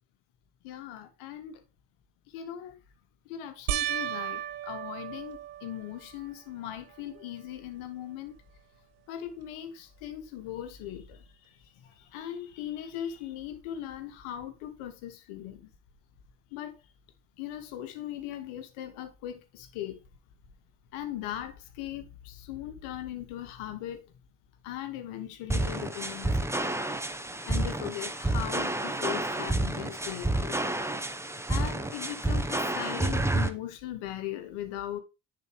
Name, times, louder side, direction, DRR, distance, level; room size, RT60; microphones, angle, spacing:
voice 1, 0.6-1.6 2.3-2.8 3.2-8.4 9.1-15.7 16.5-16.8 17.4-20.0 20.9-24.1 24.6-26.5 27.4-30.6 31.5-35.0, left 11 dB, 75° left, 1.1 m, -39 dB
sound 1, 3.7-6.3 6.9-7.5 7.8-7.9 11.1-11.2, right 11 dB, 80° right, 0.7 m, -35 dB
sound 2, 25.5-33.5, right 2 dB, 5° right, 0.9 m, -30 dB
9.3 x 4.0 x 3.2 m
hypercardioid pair, 45°, 50 cm